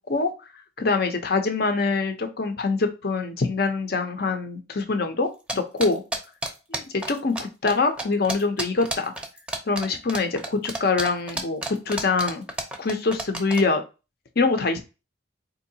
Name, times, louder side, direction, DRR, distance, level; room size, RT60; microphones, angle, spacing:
voice 1, 0.8-6.0 6.7-9.1 9.7-12.4 12.8-13.8 14.4-14.8, left 4 dB, 55° left, 6 dB, 0.7 m, -24 dB
sound 1, 5.5-7.4 7.7-7.8 8.0-13.6, right 2 dB, 5° right, 0.6 m, -30 dB
4.4 x 2.8 x 2.7 m, 0.29 s
head